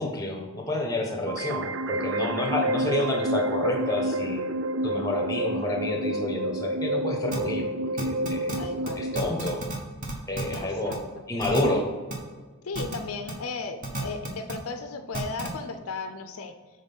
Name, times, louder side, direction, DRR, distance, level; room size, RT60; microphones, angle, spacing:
voice 1, 0.0-4.4 4.8-8.5 9.0-9.6 10.3-11.0 11.3-11.9, left 1 dB, 15° left, 2 dB, 0.9 m, -29 dB
voice 2, 1.2-1.6 8.6-9.1 10.5-11.2 12.6-16.5, left 4 dB, 75° left, 8 dB, 0.5 m, -36 dB
sound 1, 1.3-9.3, right 1 dB, 55° right, 0.4 m, -29 dB
sound 2, 7.3-7.4 8.0-8.6 8.9-9.0 9.2-9.8 10.0-10.6 10.9-11.0 11.4-11.6 12.1-12.2 12.7-13.0 13.3-13.4 13.8-14.5 15.1-15.5, right 2 dB, 35° right, 1.1 m, -32 dB
6.3 x 4.1 x 5.4 m, 1.4 s
head